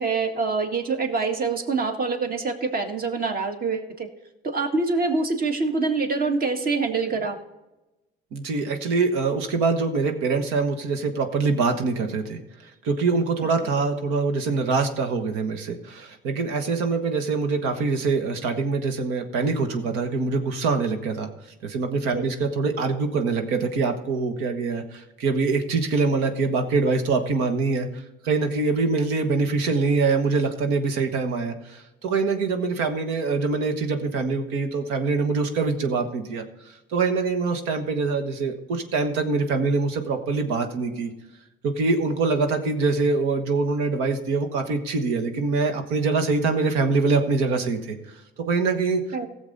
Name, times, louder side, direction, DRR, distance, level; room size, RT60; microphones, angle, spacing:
voice 1, 0.0-4.1 4.4-7.4 22.1-22.2 49.1-49.3, right 4 dB, 45° right, 4 dB, 1.8 m, -25 dB
voice 2, 8.3-21.3 21.6-36.4 36.9-41.1 41.6-49.0, right 4 dB, 90° right, 5 dB, 1.4 m, -24 dB
16.5 x 7.2 x 4.0 m, 1.0 s
cardioid pair, 90°, 21 cm